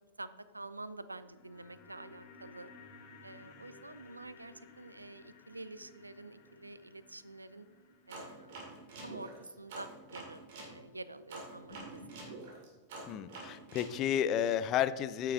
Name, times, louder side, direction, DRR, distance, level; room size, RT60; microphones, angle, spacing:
voice 1, 0.5-2.7 3.2-7.7 8.1-8.7 9.0-12.4, right 2 dB, 90° right, 14 dB, 0.4 m, -48 dB
sound 1, 1.0-11.3 11.6-11.7, left 3 dB, 55° left, 1.4 m, -58 dB
sound 2, 8.1-10.7 11.3-13.9, right 2 dB, 60° right, 2.4 m, -46 dB
voice 2, 13.1-15.3, left 10 dB, 40° left, 15 dB, 0.4 m, -31 dB
8.7 x 6.7 x 3.7 m, 1.4 s
figure-of-eight pair, 95°, 0 cm